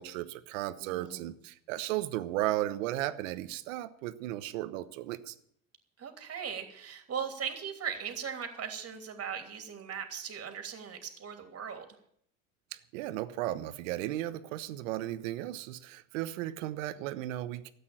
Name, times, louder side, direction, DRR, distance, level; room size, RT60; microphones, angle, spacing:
voice 1, 0.0-5.3 12.7-17.7, right 14 dB, 75° right, 13 dB, 1.1 m, -35 dB
voice 2, 0.8-1.3 6.0-11.9, right 7 dB, 40° right, 6 dB, 3.0 m, -39 dB
13.0 x 8.6 x 9.0 m, 0.68 s
hypercardioid pair, 85°, 39 cm